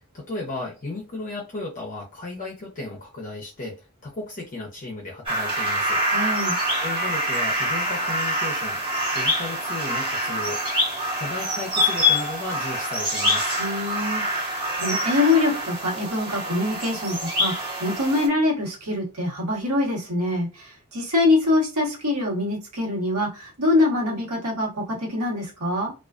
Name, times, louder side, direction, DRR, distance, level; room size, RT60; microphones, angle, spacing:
voice 1, 0.1-6.0 6.8-8.8 9.1-10.6 11.2-13.5, left 2 dB, 35° left, -2 dB, 0.6 m, -34 dB
sound 1, 5.3-18.3, equal, 25° right, 0.9 m, -25 dB
voice 2, 6.1-6.6 13.6-14.2 14.8-25.9, left 2 dB, 85° right, -2 dB, 1.1 m, -24 dB
2.3 x 2.3 x 2.4 m, 0.29 s
head